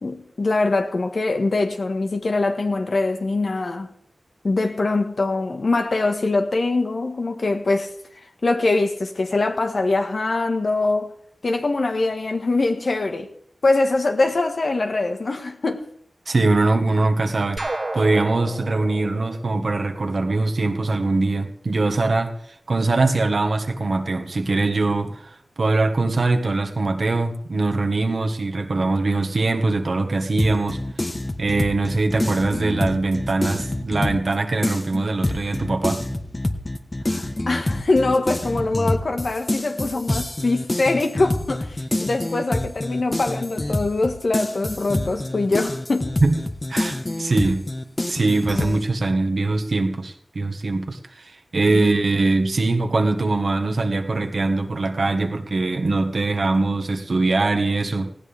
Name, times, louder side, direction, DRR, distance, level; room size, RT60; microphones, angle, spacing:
voice 1, 0.0-3.9 4.4-7.9 8.4-11.1 11.4-13.3 13.6-15.9 37.1-46.1 51.7-51.9, left 3 dB, 75° left, 1.6 m, -23 dB
voice 2, 16.3-17.6 17.9-22.3 22.7-30.8 31.4-36.0 46.2-46.3 46.7-47.7 48.1-58.1, right 3 dB, 80° right, 1.6 m, -22 dB
sound 1, 17.6-20.4, right 2 dB, 55° right, 1.5 m, -32 dB
sound 2, 30.4-34.3 34.6-48.8, left 1 dB, 35° left, 1.3 m, -27 dB
19.0 x 16.0 x 3.6 m
cardioid pair, 45°, 0 cm